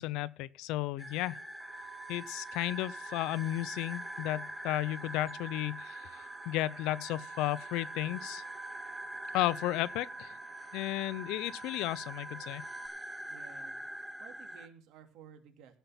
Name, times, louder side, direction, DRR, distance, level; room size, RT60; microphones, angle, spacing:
voice 1, 0.0-1.4 2.1-6.1 6.5-8.4 9.3-10.4 10.7-12.6, left 16 dB, 65° left, 0.6 m, -33 dB
sound 1, 1.0-14.7, equal, ahead, 0.8 m, -44 dB
sound 2, 1.6-12.9, right 7 dB, 30° right, 0.9 m, -51 dB
voice 2, 13.3-13.8 14.2-15.8, right 8 dB, 55° right, 2.6 m, -54 dB
16.5 x 5.6 x 7.2 m
cardioid pair, 170°, 0 cm